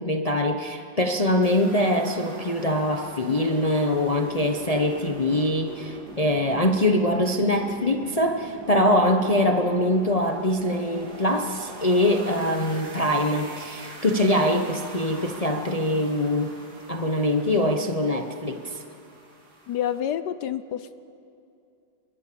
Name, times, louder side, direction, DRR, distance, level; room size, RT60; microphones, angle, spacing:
voice 1, 0.0-16.5 16.9-18.8, left 1 dB, 45° left, 4 dB, 0.4 m, -23 dB
sound 1, 1.4-20.0, right 2 dB, 45° right, 3.1 m, -43 dB
voice 2, 19.7-20.9, left 10 dB, 65° left, 13 dB, 1.1 m, -28 dB
23.5 x 22.0 x 6.9 m, 2.6 s
omnidirectional pair, 2.3 m